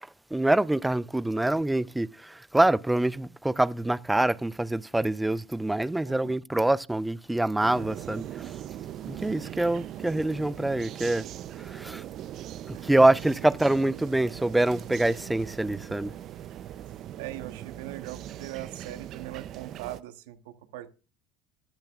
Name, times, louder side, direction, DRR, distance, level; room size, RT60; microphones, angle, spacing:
voice 1, 0.3-8.2 9.1-11.3 11.6-12.0 12.7-16.1, right 1 dB, 5° right, 0.4 m, -25 dB
voice 2, 6.0-6.4 12.7-12.9 17.2-20.9, right 14 dB, 80° right, 1.2 m, -41 dB
sound 1, 7.6-20.0, right 11 dB, 55° right, 0.6 m, -40 dB
14.5 x 10.5 x 2.4 m
supercardioid pair, 95°, 0 cm